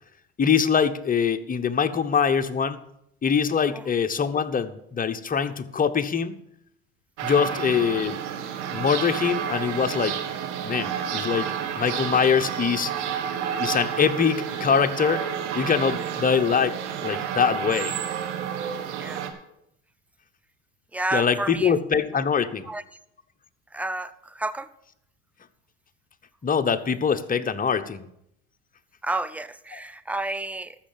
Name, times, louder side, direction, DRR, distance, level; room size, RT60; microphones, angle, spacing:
voice 1, 0.4-2.8 3.2-6.4 7.2-8.2 8.7-10.2 10.6-12.9 13.6-15.3 15.5-18.0 21.1-22.7 26.4-28.1, left 6 dB, 25° left, 10 dB, 1.0 m, -23 dB
sound 1, 7.2-19.3, right 8 dB, 80° right, 1.6 m, -30 dB
voice 2, 20.9-21.7 22.7-22.8 23.7-24.7 29.0-30.8, right 2 dB, 5° right, 13 dB, 0.7 m, -30 dB
13.5 x 6.5 x 7.4 m, 0.78 s
hypercardioid pair, 80°, 34 cm